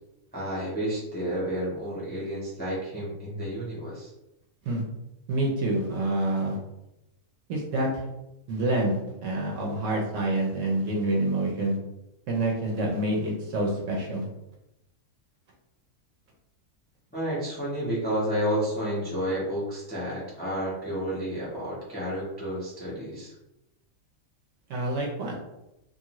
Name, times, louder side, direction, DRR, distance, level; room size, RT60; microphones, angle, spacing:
voice 1, 0.3-4.1 17.1-23.3, equal, 15° left, -7 dB, 0.4 m, -31 dB
voice 2, 5.3-6.6 7.5-7.9 8.5-11.8 12.3-14.3 24.7-25.4, right 1 dB, 65° right, -1 dB, 0.9 m, -27 dB
2.6 x 2.5 x 2.9 m, 0.89 s
omnidirectional pair, 1.6 m